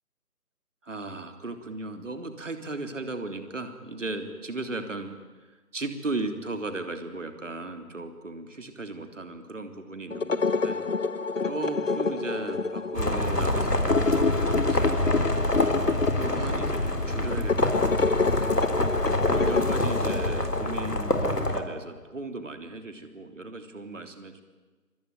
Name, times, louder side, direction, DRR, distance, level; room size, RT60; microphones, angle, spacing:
voice 1, 0.8-5.1 5.7-10.8 11.4-15.3 15.8-18.8 19.2-24.4, right 2 dB, 50° right, 7 dB, 3.5 m, -36 dB
sound 1, 10.1-20.9, left 4 dB, 55° left, 1.1 m, -28 dB
sound 2, 12.9-21.6, left 1 dB, 90° left, 4.0 m, -26 dB
26.0 x 22.0 x 9.4 m, 1.3 s
figure-of-eight pair, 160°, 46 cm